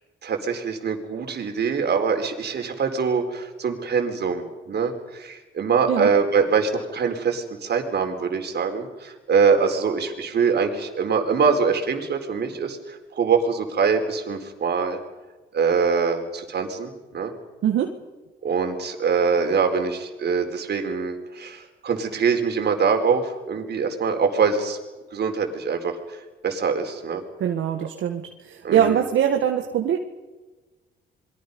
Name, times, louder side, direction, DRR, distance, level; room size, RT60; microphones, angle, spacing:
voice 1, 0.2-15.0 15.5-17.3 18.4-24.8 25.1-26.0 26.4-27.2 28.6-29.0, right 5 dB, 55° right, 4 dB, 4.5 m, -23 dB
voice 2, 17.6-18.0 27.4-30.0, right 9 dB, 75° right, 3 dB, 1.9 m, -22 dB
28.0 x 22.5 x 5.5 m, 1.2 s
cardioid pair, 90°, 20 cm